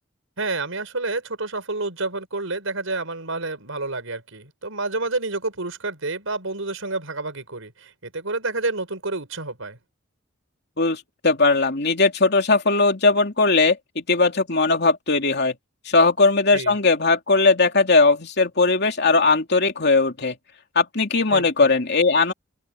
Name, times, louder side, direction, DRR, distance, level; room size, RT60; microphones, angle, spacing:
voice 1, 0.4-9.8 16.5-16.8 21.3-21.7, right 3 dB, 85° right, 5.0 m, -29 dB
voice 2, 10.8-15.5 15.8-20.3 20.7-22.3, left 3 dB, 55° left, 3.1 m, -19 dB
open air
head